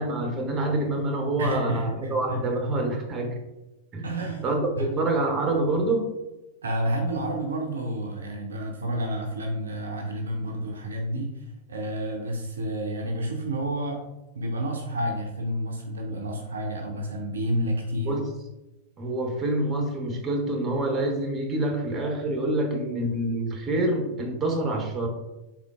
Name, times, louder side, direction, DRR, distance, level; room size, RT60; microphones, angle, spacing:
voice 1, 0.0-3.4 3.9-6.1 18.1-18.2 19.0-25.1, right 2 dB, 25° right, 2 dB, 0.8 m, -26 dB
voice 2, 1.4-2.4 4.0-4.4 4.8-4.9 6.6-14.0 14.4-18.2, right 1 dB, 70° right, 2 dB, 0.5 m, -30 dB
3.6 x 3.6 x 2.3 m, 0.99 s
figure-of-eight pair, 90°, 0 cm